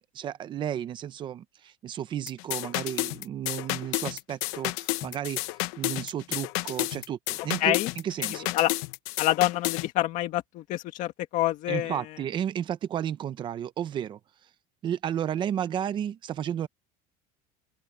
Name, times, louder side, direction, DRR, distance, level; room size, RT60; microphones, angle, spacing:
voice 1, 0.1-7.8 8.0-8.5 11.7-14.2 14.8-16.7, right 10 dB, 25° right, 0.7 m, -33 dB
sound 1, 2.3-9.9, left 21 dB, 75° left, 0.9 m, -31 dB
voice 2, 7.6-7.9 8.5-8.7 9.2-12.2, left 15 dB, 45° left, 1.9 m, -27 dB
open air
cardioid pair, 180°, 18 cm